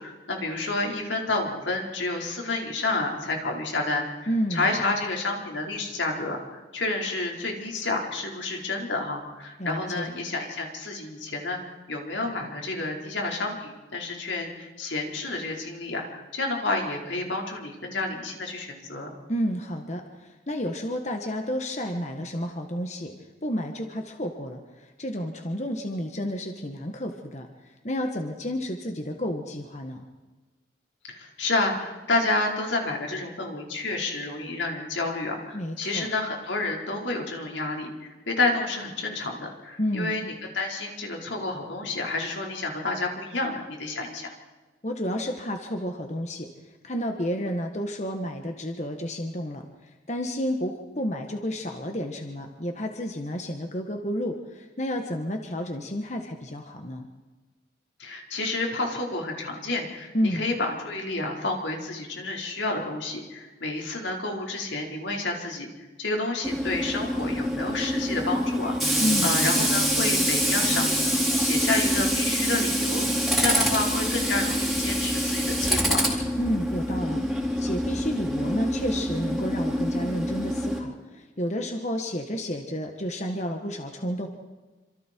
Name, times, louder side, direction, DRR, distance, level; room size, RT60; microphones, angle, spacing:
voice 1, 0.0-6.4 6.7-19.1 31.1-44.3 58.0-65.7 66.0-73.1 73.4-76.0, left 2 dB, 85° left, 0 dB, 4.7 m, -30 dB
voice 2, 4.3-4.7 9.6-10.1 19.3-23.1 23.4-27.5 27.8-30.0 35.5-36.1 39.8-40.1 44.8-46.5 46.8-49.6 50.1-57.1 60.1-60.4 69.0-69.5 76.4-84.3, equal, 40° left, 4 dB, 1.5 m, -31 dB
Tools, 66.4-80.8, equal, ahead, 4.2 m, -25 dB
27.5 x 26.5 x 4.6 m, 1.3 s
head